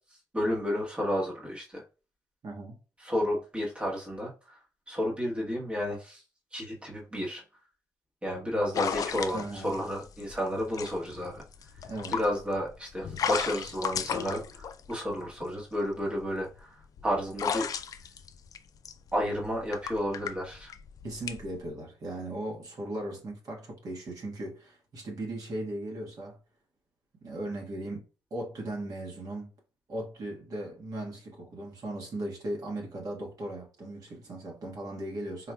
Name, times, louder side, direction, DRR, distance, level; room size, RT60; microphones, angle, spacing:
voice 1, 0.3-1.8 3.0-4.6 4.9-6.2 6.5-7.4 8.2-11.4 12.1-17.7 19.1-20.7, equal, 15° right, 1.2 m, -31 dB
voice 2, 2.4-2.8 9.3-9.8 11.9-12.2 21.0-26.4 27.2-28.0 28.3-29.5 29.9-35.5, right 1 dB, 55° right, 1.5 m, -37 dB
sound 1, 8.7-15.4 16.0-21.7, left 7 dB, 55° left, 0.4 m, -35 dB
4.5 x 2.9 x 2.3 m
cardioid pair, 90°, 7 cm